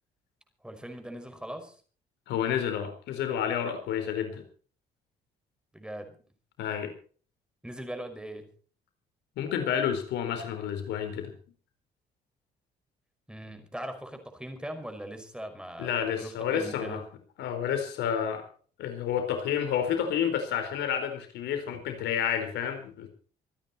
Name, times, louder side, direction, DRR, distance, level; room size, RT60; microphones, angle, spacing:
voice 1, 0.6-1.8 5.7-6.2 7.6-8.5 13.3-15.9 16.2-17.0 21.7-21.8, right 1 dB, 5° right, 6 dB, 5.7 m, -40 dB
voice 2, 2.3-4.4 6.6-6.9 9.4-11.3 15.8-17.0 17.4-18.5 18.8-23.1, left 8 dB, 80° left, 7 dB, 4.3 m, -30 dB
26.5 x 10.0 x 4.4 m, 0.41 s
supercardioid pair, 70°, 18 cm